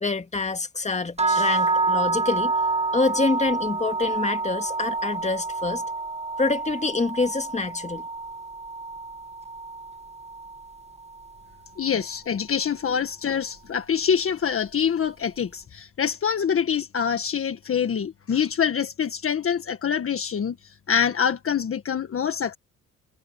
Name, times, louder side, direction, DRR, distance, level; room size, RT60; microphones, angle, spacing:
voice 1, 0.0-2.5 2.9-5.8 6.4-8.1, left 3 dB, 20° left, 2.3 m, -26 dB
sound 1, 1.2-11.3, right 3 dB, 20° right, 1.6 m, -28 dB
voice 2, 11.8-22.5, left 7 dB, 45° left, 1.6 m, -25 dB
cardioid pair, 85°, 31 cm